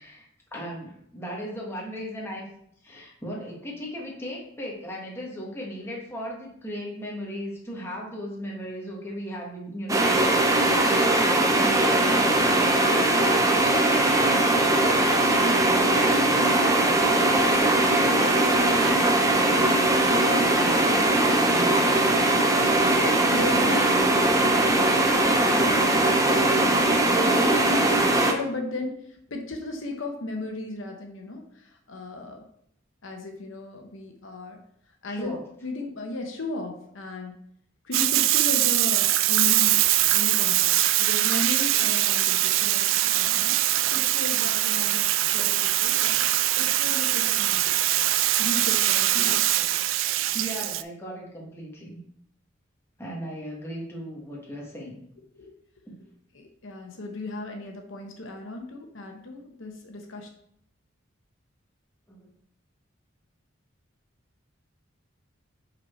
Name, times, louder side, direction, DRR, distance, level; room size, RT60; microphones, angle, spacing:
voice 1, 0.0-2.5 2.8-20.1 20.3-21.2 21.5-22.3 28.6-28.9 35.1-35.5 49.1-49.8 50.3-52.0 53.0-55.0 55.9-56.0 62.1-62.3, equal, 10° left, -3 dB, 1.4 m, -37 dB
sound 1, 9.9-28.3, right 2 dB, 15° right, 0.6 m, -20 dB
voice 2, 23.3-29.0 29.3-32.4 33.0-34.6 35.0-37.4 37.8-39.8 40.1-43.6 43.9-45.0 45.3-46.1 46.6-47.7 48.4-49.4 55.4-55.5 56.3-60.3, left 2 dB, 70° left, 3 dB, 0.9 m, -36 dB
Bathtub (filling or washing), 37.9-50.8, right 14 dB, 70° right, 0.3 m, -22 dB
5.9 x 4.2 x 4.3 m, 0.70 s
head